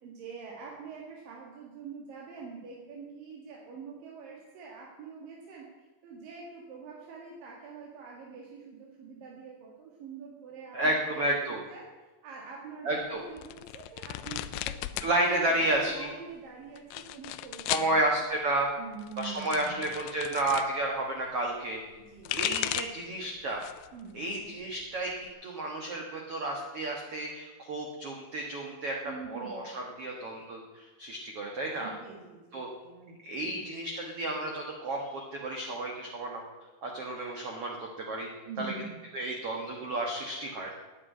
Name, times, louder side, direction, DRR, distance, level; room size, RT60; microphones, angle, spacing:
voice 1, 0.0-15.1 15.5-16.8 17.1-18.1 18.8-19.8 22.1-22.7 23.9-24.5 29.0-29.6 31.8-33.6 38.5-39.0, right 5 dB, 60° right, -3 dB, 3.1 m, -45 dB
voice 2, 10.7-11.6 12.8-13.2 15.0-16.1 17.7-18.7 19.2-21.8 22.3-23.7 24.1-29.0 29.3-31.9 32.5-32.7 33.2-36.4 36.8-38.3 38.6-38.7 39.1-40.7, right 1 dB, 80° right, 1 dB, 1.3 m, -31 dB
sound 1, 13.4-15.1 15.4-16.1 16.8-17.9 18.9-20.7 22.0-23.1 23.5-24.0 24.3-25.3, left 14 dB, 90° left, 2.1 m, -36 dB
9.9 x 8.7 x 9.3 m, 1.2 s
omnidirectional pair, 4.9 m